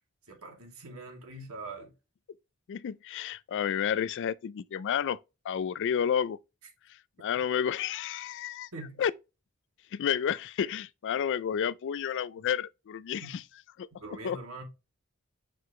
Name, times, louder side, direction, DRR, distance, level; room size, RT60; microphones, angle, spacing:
voice 1, 0.3-1.9 8.7-9.0 13.2-13.4 14.0-14.6, right 2 dB, 70° right, 2.3 m, -43 dB
voice 2, 2.7-5.2 5.4-6.4 7.2-8.7 9.0-9.1 9.9-13.4 13.8-14.4, left 8 dB, 55° left, 0.3 m, -31 dB
7.7 x 4.7 x 3.1 m
head